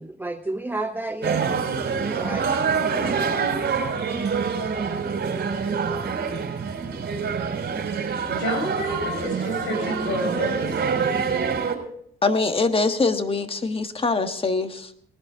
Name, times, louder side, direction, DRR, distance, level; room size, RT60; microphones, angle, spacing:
voice 1, 0.0-2.5, right 2 dB, 10° right, 6 dB, 0.8 m, -31 dB
sound 1, 1.2-11.8, right 5 dB, 55° right, 4.1 m, -26 dB
voice 2, 8.3-10.7, equal, 85° left, 4 dB, 5.0 m, -29 dB
voice 3, 12.2-14.9, left 3 dB, 30° left, 8 dB, 1.5 m, -23 dB
19.5 x 11.5 x 3.7 m, 0.65 s
cardioid pair, 90°, 20 cm